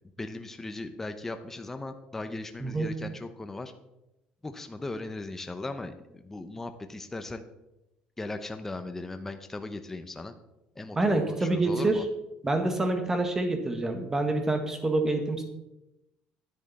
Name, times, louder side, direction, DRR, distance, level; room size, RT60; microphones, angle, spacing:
voice 1, 0.2-3.7 4.4-7.4 8.2-10.3 10.8-12.0, left 2 dB, 10° left, 7 dB, 0.7 m, -38 dB
voice 2, 2.6-2.9 10.9-12.0 12.4-15.4, right 2 dB, 15° right, 6 dB, 1.6 m, -27 dB
10.5 x 10.0 x 4.2 m, 0.93 s
cardioid pair, 140°, 3 cm